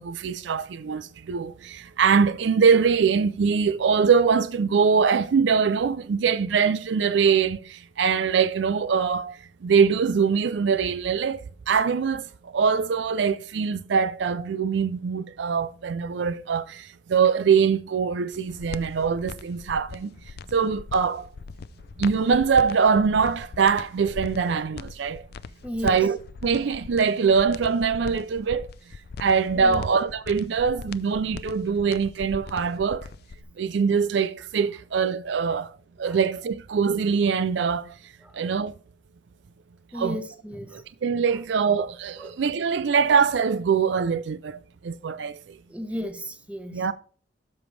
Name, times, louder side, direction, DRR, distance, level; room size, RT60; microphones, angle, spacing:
voice 1, 0.0-9.4 9.6-11.4 11.7-20.1 20.5-21.3 22.0-25.2 25.8-28.7 29.2-33.1 33.6-35.7 36.0-37.9 38.3-38.7 39.9-40.2 40.7-45.4 46.7-46.9, right 6 dB, 70° right, 0.4 m, -23 dB
sound 1, 18.3-33.4, left 4 dB, 55° left, 0.4 m, -40 dB
voice 2, 25.6-26.0 29.6-29.8 36.0-36.2 38.2-38.4 39.9-40.8 42.2-42.4 45.7-46.9, equal, 5° right, 1.1 m, -34 dB
12.5 x 5.1 x 3.3 m
head